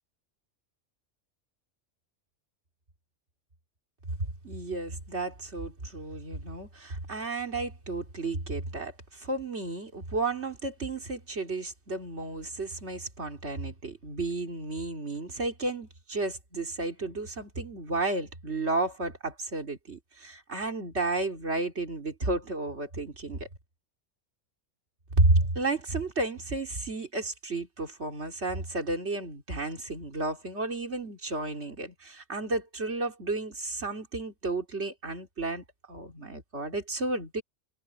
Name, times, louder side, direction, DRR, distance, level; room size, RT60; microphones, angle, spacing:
voice 1, 4.4-23.5 25.1-37.4, right 2 dB, 65° right, 3.4 m, -32 dB
omnidirectional pair, 1.2 m